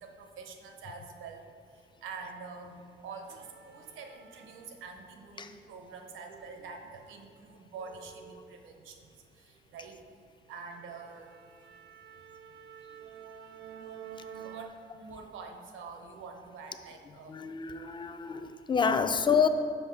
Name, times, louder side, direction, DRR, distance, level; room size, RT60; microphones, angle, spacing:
voice 1, 0.0-1.5 2.0-9.0 9.7-10.0 10.5-11.3 14.4-17.4, right 4 dB, 80° right, 0.8 m, -46 dB
sound 1, 2.2-2.3 2.7-5.1 5.4-9.2 9.6-9.8 10.2-10.3 10.7-14.7, right 8 dB, 60° right, 0.4 m, -51 dB
voice 2, 17.3-19.5, left 6 dB, 25° left, 0.4 m, -28 dB
5.6 x 5.6 x 4.4 m
cardioid pair, 90°, 20 cm